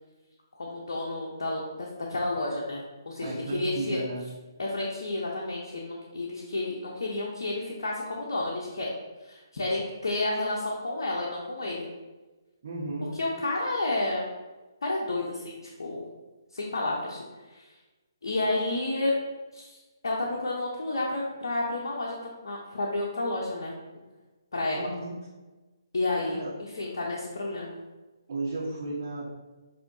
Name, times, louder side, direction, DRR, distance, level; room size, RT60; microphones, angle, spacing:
voice 1, 0.6-4.0 4.6-8.9 9.2-11.9 13.1-14.3 14.8-16.0 16.5-17.2 17.5-17.6 18.2-19.2 19.5-19.8 20.0-22.2 22.4-23.7 24.5-24.9 25.9-27.8, left 2 dB, 70° left, -3 dB, 0.8 m, -31 dB
voice 2, 3.2-4.3 12.6-13.1 24.7-25.2 26.2-26.5 28.3-29.3, right 2 dB, 50° right, -7 dB, 1.2 m, -34 dB
6.0 x 2.7 x 2.7 m, 1.2 s
hypercardioid pair, 145°, 2 cm